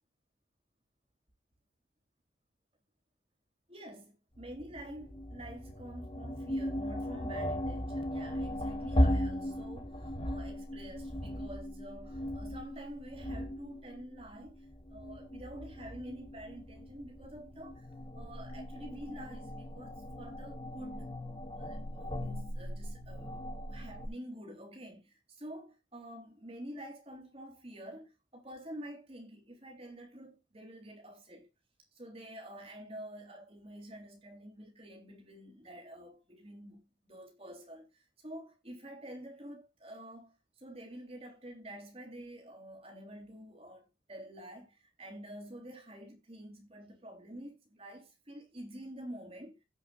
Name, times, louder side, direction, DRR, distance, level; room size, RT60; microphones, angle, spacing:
voice 1, 3.7-14.6 14.9-17.9 18.1-21.2 21.5-31.5 32.0-49.6, right 1 dB, 30° right, 3.4 m, -48 dB
sound 1, 4.4-24.1, equal, 30° left, 1.1 m, -37 dB
17.0 x 5.7 x 2.5 m
head